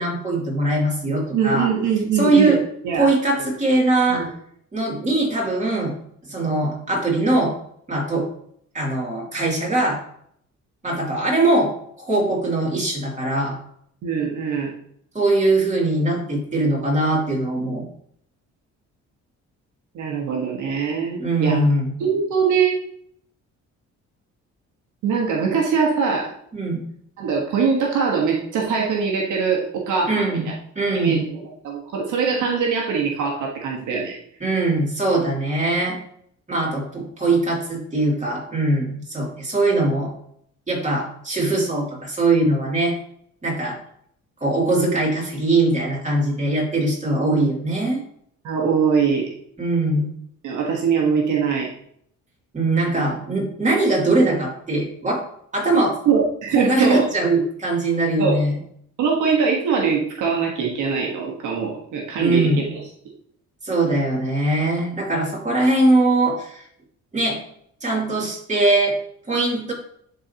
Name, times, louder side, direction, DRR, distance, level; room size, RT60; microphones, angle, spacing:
voice 1, 0.0-1.7 2.1-2.6 3.0-4.2 4.7-5.9 6.3-7.5 7.9-8.3 8.7-10.0 10.8-11.7 12.0-13.6 15.1-17.8 21.2-21.9 26.5-26.8 30.1-30.5 30.7-31.2 34.4-36.0 36.5-40.1 40.7-42.9 43.4-43.8 44.4-48.0 49.6-50.1 52.5-55.2 55.5-56.0 56.5-58.5 62.2-62.6 63.6-66.6 67.1-67.4 67.8-68.9 69.3-69.7, right 2 dB, 25° right, -3 dB, 2.8 m, -21 dB
voice 2, 1.3-2.6 2.8-3.1 4.1-4.3 14.0-14.7 19.9-21.6 22.0-22.8 25.0-26.3 27.2-30.5 30.9-34.2 48.4-49.3 50.4-51.7 56.0-57.1 58.2-58.4 59.0-62.8, right 6 dB, 80° right, -1 dB, 1.4 m, -22 dB
10.5 x 4.0 x 2.9 m, 0.67 s
cardioid pair, 90°, 30 cm